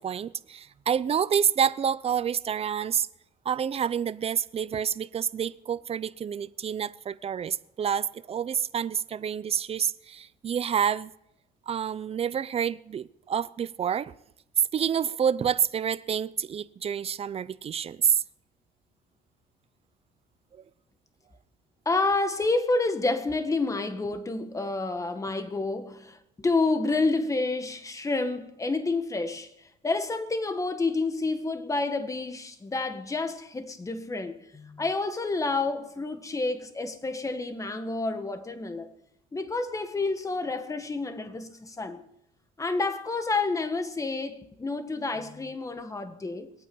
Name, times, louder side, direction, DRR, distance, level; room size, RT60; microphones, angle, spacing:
voice 1, 0.0-3.1 3.4-11.1 11.7-14.1 14.7-18.2, right 8 dB, 35° right, 0.6 m, -28 dB
voice 2, 21.9-38.9 39.3-42.0 42.6-46.5, left 3 dB, 20° left, 1.7 m, -29 dB
21.0 x 9.0 x 7.1 m
cardioid pair, 110°, 17 cm